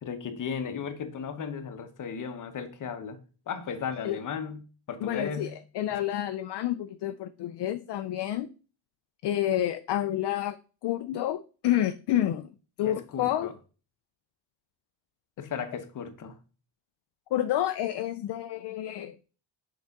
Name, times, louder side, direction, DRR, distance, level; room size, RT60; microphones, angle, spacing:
voice 1, 0.0-3.2 3.5-4.6 4.9-5.6 5.9-6.0 12.8-13.5 15.4-16.4, left 6 dB, 40° left, 0.9 m, -35 dB
voice 2, 5.0-8.5 9.2-10.6 10.8-12.5 12.8-13.5 17.3-19.3, left 12 dB, 60° left, 0.5 m, -29 dB
6.6 x 4.9 x 3.5 m
wide cardioid pair, 180°, 47 cm